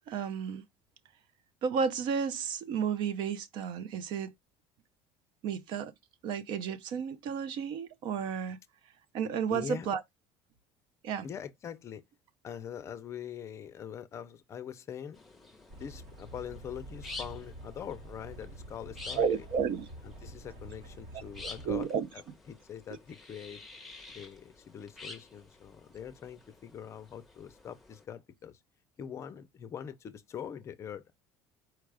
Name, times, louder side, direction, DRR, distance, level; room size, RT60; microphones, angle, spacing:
voice 1, 0.1-0.6 1.6-4.3 5.4-5.9 6.2-8.6 9.1-10.0 11.0-11.3 19.1-19.9 21.6-22.1, right 6 dB, 55° right, 0.6 m, -32 dB
voice 2, 9.5-9.9 11.2-12.0 12.4-15.2 15.8-19.4 20.0-22.2 22.5-23.6 24.1-28.6 29.0-31.1, left 8 dB, 30° left, 0.5 m, -43 dB
sound 1, 15.1-28.0, left 3 dB, ahead, 0.8 m, -50 dB
sound 2, 15.7-21.8, right 1 dB, 80° right, 2.2 m, -48 dB
4.6 x 2.3 x 4.7 m
cardioid pair, 160°, 10 cm